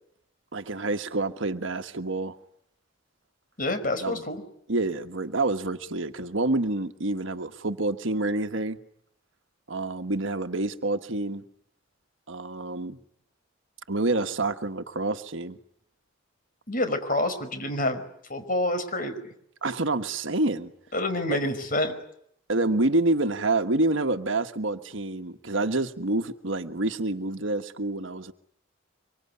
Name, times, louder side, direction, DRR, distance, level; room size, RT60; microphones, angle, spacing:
voice 1, 0.5-2.4 4.0-4.2 4.7-8.8 9.7-11.4 12.3-13.0 13.9-15.6 19.6-20.7 21.3-21.4 22.5-28.3, right 2 dB, 70° right, 1.4 m, -27 dB
voice 2, 3.6-4.4 16.7-18.0 18.3-19.1 20.9-21.9, left 1 dB, 40° left, 5.1 m, -27 dB
25.0 x 24.5 x 9.7 m
head